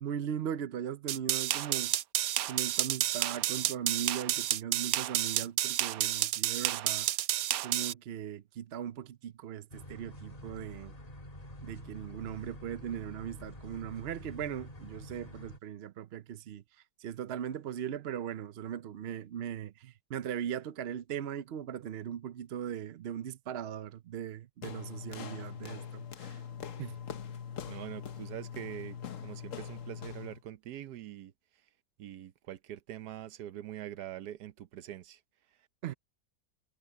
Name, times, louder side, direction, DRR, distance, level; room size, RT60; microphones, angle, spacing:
voice 1, 0.0-1.9 2.5-7.1 7.6-10.9 11.6-16.6 17.0-26.4 26.8-27.0 35.8-35.9, right 9 dB, 60° right, 0.7 m, -39 dB
sound 1, 1.1-7.9, right 14 dB, 75° right, 1.0 m, -30 dB
sound 2, 9.7-15.6, left 1 dB, 25° left, 1.7 m, -48 dB
sound 3, 24.6-30.4, left 8 dB, 60° left, 1.4 m, -42 dB
voice 2, 27.7-31.3 32.0-35.2, right 12 dB, 90° right, 1.3 m, -44 dB
omnidirectional pair, 1.6 m